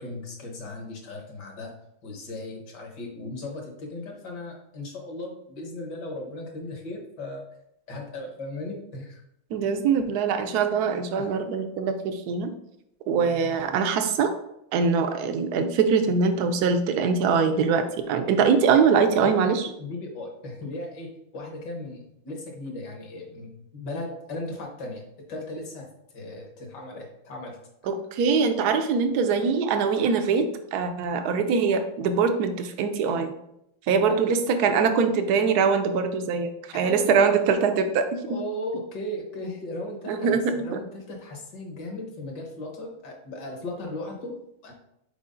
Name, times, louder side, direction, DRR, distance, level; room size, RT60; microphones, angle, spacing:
voice 1, 0.0-1.7 2.0-7.4 7.9-9.2 11.2-11.3 19.8-27.6 34.1-34.3 36.7-37.4 38.3-44.7, left 1 dB, 60° left, 1 dB, 1.7 m, -37 dB
voice 2, 9.5-12.5 13.1-14.3 14.7-19.7 27.9-33.3 33.9-38.2 40.1-40.5, right 5 dB, 70° right, 7 dB, 1.0 m, -23 dB
5.5 x 4.5 x 3.8 m, 0.79 s
omnidirectional pair, 2.2 m